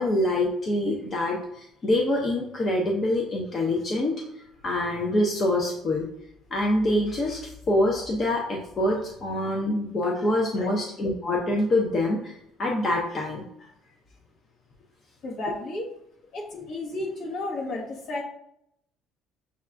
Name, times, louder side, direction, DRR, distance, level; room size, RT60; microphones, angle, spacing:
voice 1, 0.0-6.0 6.5-13.7 16.5-16.6 16.9-17.1, left 1 dB, 35° left, -1 dB, 0.6 m, -26 dB
voice 2, 15.2-15.9 16.3-18.2, left 2 dB, 60° left, -1 dB, 1.2 m, -33 dB
6.7 x 2.3 x 2.5 m, 0.75 s
cardioid pair, 120°, 0 cm